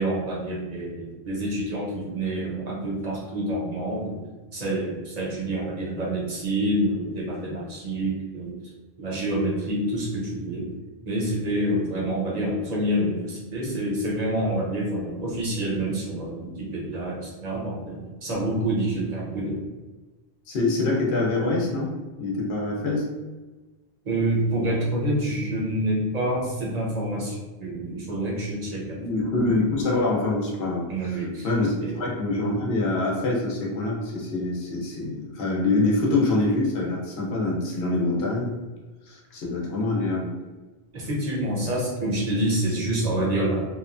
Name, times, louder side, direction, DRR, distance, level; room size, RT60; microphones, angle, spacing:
voice 1, 0.0-4.2 4.5-8.6 9.0-10.7 11.0-19.6 24.0-29.0 30.9-31.5 31.8-31.9 40.9-43.7, right 1 dB, 45° right, -4 dB, 0.8 m, -27 dB
voice 2, 20.5-21.9 22.2-23.1 29.0-31.2 31.4-38.5 39.1-40.3, left 2 dB, 80° left, -3 dB, 0.9 m, -25 dB
2.9 x 2.1 x 2.5 m, 1.2 s
omnidirectional pair, 1.1 m